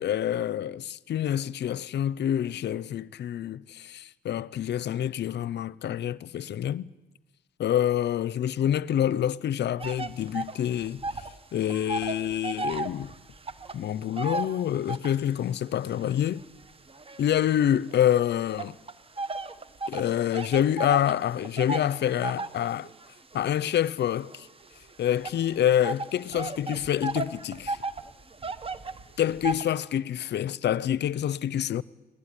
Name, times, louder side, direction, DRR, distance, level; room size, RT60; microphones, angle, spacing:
voice 1, 0.0-6.9 7.6-11.0 11.5-13.1 13.7-16.4 17.2-18.8 19.9-22.9 23.3-24.5 25.0-27.8 29.2-31.8, left 10 dB, 60° left, 0.7 m, -27 dB
sound 1, 9.8-11.4 11.6-15.3 15.9-18.0 18.6-29.6, right 3 dB, 30° right, 1.1 m, -35 dB
20.0 x 19.0 x 9.9 m
cardioid pair, 90°, 20 cm